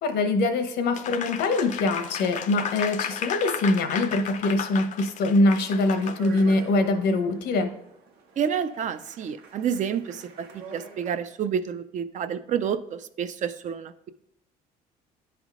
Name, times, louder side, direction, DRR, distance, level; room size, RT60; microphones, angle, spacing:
voice 1, 0.0-7.7, left 2 dB, 75° left, 7 dB, 0.9 m, -23 dB
Applause, 1.0-6.5, left 7 dB, 45° left, 0.5 m, -34 dB
Speech, 5.5-11.4, right 4 dB, 80° right, 1.2 m, -47 dB
voice 2, 8.4-10.2 10.7-14.1, right 8 dB, 45° right, 11 dB, 0.5 m, -29 dB
10.0 x 3.5 x 3.6 m, 0.78 s
cardioid pair, 110°, 17 cm